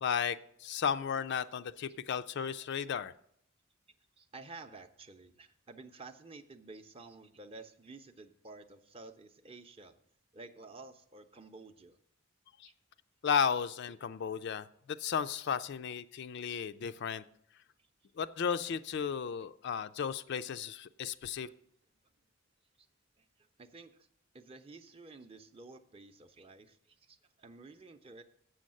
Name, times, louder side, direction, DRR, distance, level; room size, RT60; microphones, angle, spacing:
voice 1, 0.0-3.1 12.6-12.7 13.2-17.2 18.2-21.5, left 7 dB, 55° left, 12 dB, 0.4 m, -34 dB
voice 2, 4.2-10.0 10.3-12.0 12.6-12.7 22.8-22.9 23.2-23.9 24.3-28.2, right 3 dB, 25° right, 8 dB, 0.6 m, -52 dB
7.7 x 6.4 x 7.5 m, 0.69 s
head